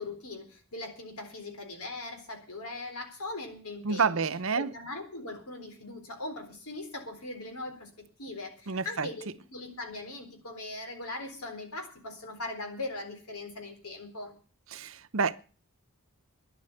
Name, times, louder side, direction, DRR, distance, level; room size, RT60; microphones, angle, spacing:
voice 1, 0.0-4.2 4.6-7.9 8.2-14.4, left 2 dB, 85° left, 3.9 m, -40 dB
voice 2, 3.8-4.7 8.7-9.1 14.7-15.3, right 5 dB, 65° right, 0.8 m, -28 dB
12.0 x 11.0 x 7.9 m
head